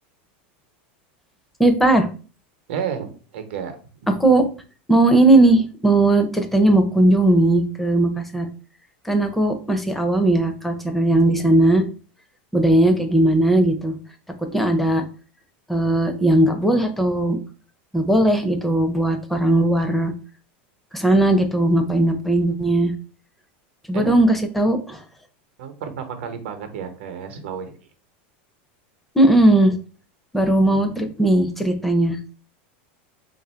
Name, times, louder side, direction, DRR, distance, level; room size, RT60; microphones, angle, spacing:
voice 1, 1.6-2.1 4.1-4.5 4.9-8.5 9.0-11.8 12.5-13.9 14.4-15.0 15.7-17.4 17.9-20.1 20.9-22.9 23.9-25.0 29.1-29.8 30.3-32.2, right 1 dB, ahead, 5 dB, 0.5 m, -18 dB
voice 2, 2.7-3.7 23.9-24.2 25.6-27.7 30.7-31.1, right 7 dB, 75° right, 7 dB, 0.8 m, -32 dB
3.4 x 2.5 x 4.3 m, 0.38 s
supercardioid pair, 160°, 6 cm